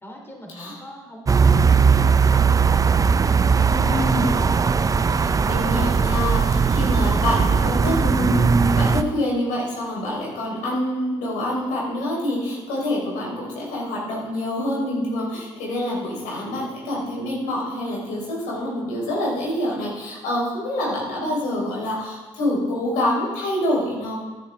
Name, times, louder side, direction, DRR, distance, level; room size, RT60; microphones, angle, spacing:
voice 1, 0.0-2.9 3.5-4.5 5.0-5.3, equal, 20° left, 0 dB, 3.0 m, -41 dB
sound 1, 1.3-9.0, right 5 dB, 25° right, 0.4 m, -18 dB
voice 2, 3.7-4.4 5.2-24.2, left 1 dB, 80° left, -3 dB, 4.1 m, -26 dB
13.0 x 10.5 x 3.5 m, 1.3 s
supercardioid pair, 65°, 13 cm